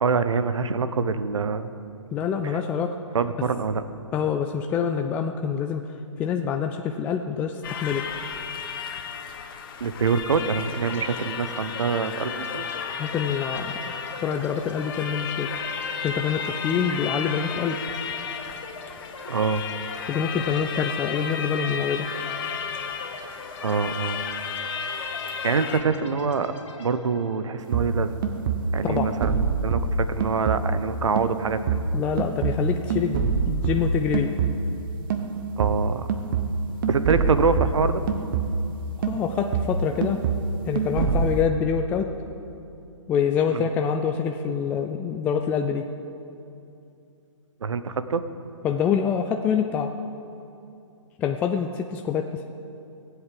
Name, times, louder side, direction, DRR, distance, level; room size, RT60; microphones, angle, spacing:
voice 1, 0.0-1.8 2.4-2.6 3.1-3.8 9.8-12.7 19.3-19.6 23.6-24.3 25.4-26.5 26.8-28.1 28.7-31.8 35.6-36.1 36.9-38.0 43.5-43.7 47.6-48.2, right 5 dB, 65° right, 11 dB, 0.9 m, -25 dB
voice 2, 2.1-3.0 4.1-5.9 6.2-8.1 13.0-13.8 14.2-15.5 16.0-17.8 20.1-22.1 28.8-29.1 31.9-34.3 39.1-40.2 40.7-42.1 43.1-45.9 48.6-49.9 51.2-52.4, left 7 dB, 10° left, 5 dB, 0.3 m, -26 dB
sound 1, 7.6-25.8, left 7 dB, 45° left, 1.1 m, -33 dB
sound 2, 10.9-28.5, left 3 dB, 65° left, 2.4 m, -42 dB
sound 3, 27.7-30.9 31.2-34.8 35.1-38.8 39.0-41.4, right 4 dB, 40° right, 1.1 m, -26 dB
17.5 x 8.1 x 7.7 m, 2.7 s
figure-of-eight pair, 135°, 17 cm